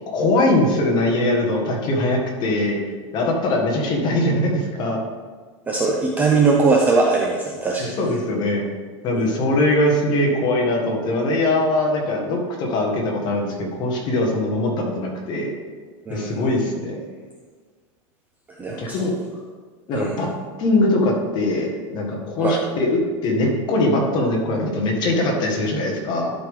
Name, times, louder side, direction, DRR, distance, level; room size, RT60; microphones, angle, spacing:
voice 1, 0.1-2.8 3.1-5.0 7.8-8.6 9.0-15.5 16.1-17.0 18.8-19.1 19.9-20.3 20.6-26.3, left 1 dB, 25° left, -1 dB, 1.5 m, -21 dB
voice 2, 5.7-8.0 9.1-9.3 16.1-16.6 18.6-19.2 19.9-20.1 22.4-22.6, right 4 dB, 10° right, -1 dB, 0.5 m, -21 dB
12.0 x 5.0 x 3.6 m, 1.5 s
supercardioid pair, 170°, 16 cm